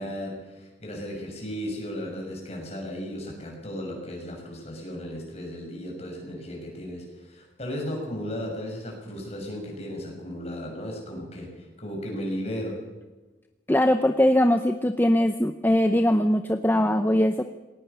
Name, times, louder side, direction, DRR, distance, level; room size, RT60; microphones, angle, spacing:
voice 1, 0.0-11.5 11.8-12.8, equal, 35° left, 1 dB, 6.5 m, -35 dB
voice 2, 13.7-17.4, left 1 dB, 10° left, 8 dB, 0.7 m, -21 dB
20.0 x 18.5 x 6.9 m, 1.2 s
head